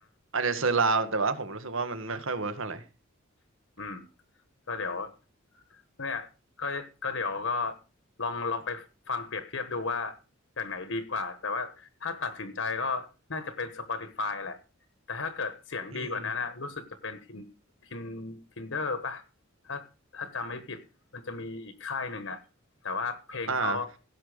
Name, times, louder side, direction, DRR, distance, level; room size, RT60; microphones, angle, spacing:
voice 1, 0.3-2.8 15.9-16.3 23.5-23.8, right 4 dB, 75° right, 10 dB, 1.7 m, -28 dB
voice 2, 3.8-4.1 4.7-5.1 5.5-5.6 6.0-6.3 6.6-7.8 8.2-10.2 10.6-14.6 15.1-17.5 17.9-19.2 19.6-19.8 20.1-20.8 21.1-22.4 22.8-23.9, left 4 dB, 70° left, 10 dB, 1.4 m, -34 dB
16.5 x 7.1 x 5.1 m, 0.33 s
head